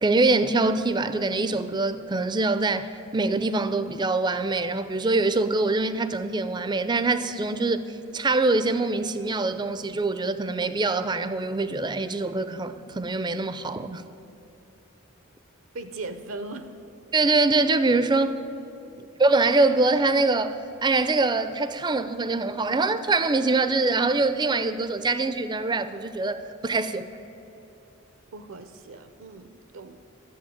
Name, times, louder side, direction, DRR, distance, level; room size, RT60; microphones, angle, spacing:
voice 1, 0.0-7.9 8.1-14.0 17.1-18.3 19.2-27.1, right 3 dB, 20° right, 12 dB, 0.5 m, -24 dB
voice 2, 15.7-16.7 18.9-19.1 28.3-30.0, right 2 dB, 65° right, 10 dB, 0.7 m, -39 dB
11.5 x 7.8 x 8.8 m, 3.0 s
head